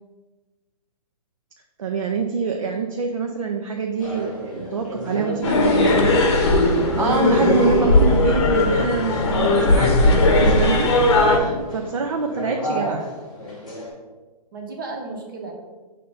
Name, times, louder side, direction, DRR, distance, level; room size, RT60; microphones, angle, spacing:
voice 1, 1.8-6.2 7.0-10.9 11.3-13.1, right 5 dB, 55° right, 3 dB, 0.6 m, -25 dB
sound 1, 4.0-13.9, equal, ahead, 0.8 m, -32 dB
voice 2, 4.8-6.1 14.5-15.5, right 2 dB, 35° right, 1 dB, 1.0 m, -34 dB
sound 2, 5.4-11.4, left 2 dB, 40° left, 0.8 m, -18 dB
5.3 x 3.4 x 5.5 m, 1.2 s
hypercardioid pair, 180°, 21 cm